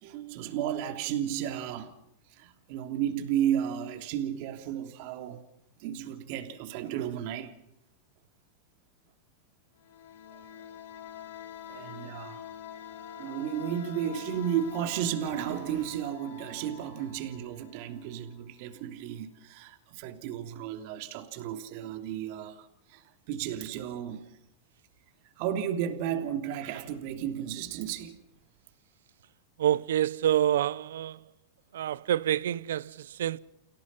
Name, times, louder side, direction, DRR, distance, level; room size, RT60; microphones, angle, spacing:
voice 1, 0.0-1.9 2.3-5.4 5.8-7.6 10.3-10.7 11.7-12.5 13.2-24.3 25.4-28.2, right 10 dB, 55° right, 3.1 m, -33 dB
sound 1, 9.8-18.4, left 9 dB, 75° left, 3.2 m, -46 dB
voice 2, 29.6-31.2 31.7-33.4, right 11 dB, 85° right, 0.7 m, -27 dB
30.0 x 17.0 x 5.6 m
supercardioid pair, 135°, 0 cm